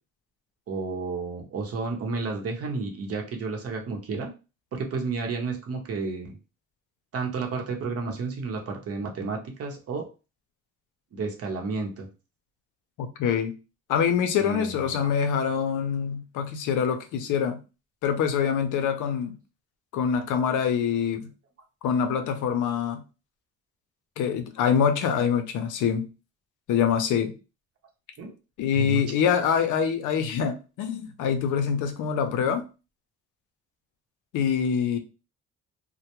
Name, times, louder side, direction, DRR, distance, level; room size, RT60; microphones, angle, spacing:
voice 1, 0.7-4.3 4.7-6.3 7.1-10.0 11.1-12.1 14.4-15.1 28.2-28.3 28.7-29.0, right 4 dB, 50° right, 0.7 m, -31 dB
voice 2, 13.0-13.5 13.9-17.6 18.0-19.4 19.9-21.3 21.8-23.0 24.2-26.1 26.7-27.3 28.6-32.6 34.3-35.0, left 7 dB, 80° left, 0.6 m, -25 dB
2.1 x 2.1 x 2.9 m
cardioid pair, 90°, 30 cm